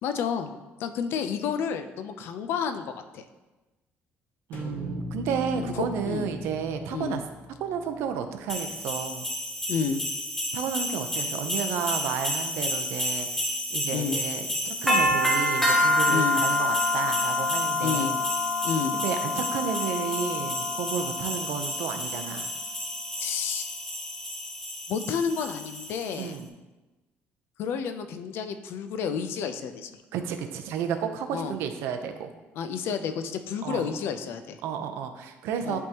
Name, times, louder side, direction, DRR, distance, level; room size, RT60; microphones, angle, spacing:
voice 1, 0.0-0.5 0.8-3.2 5.5-6.3 6.9-7.2 9.7-10.0 13.9-14.2 16.1-16.4 17.8-18.1 18.6-18.9 23.2-23.7 24.9-26.3 27.6-29.9 31.3-31.5 32.5-34.6 35.6-35.8, left 6 dB, 65° left, 9 dB, 0.5 m, -30 dB
sound 1, 4.5-8.7, left 2 dB, 40° left, 0.9 m, -40 dB
voice 2, 4.5-7.2 7.6-9.3 10.5-13.4 13.7-18.2 18.9-22.5 26.2-26.5 30.1-32.3 33.6-33.9 34.6-35.8, right 7 dB, 90° right, 7 dB, 0.6 m, -32 dB
sound 2, 8.5-26.2, left 1 dB, 10° left, 0.8 m, -28 dB
10.5 x 3.6 x 2.9 m, 1.1 s
cardioid pair, 155°, 4 cm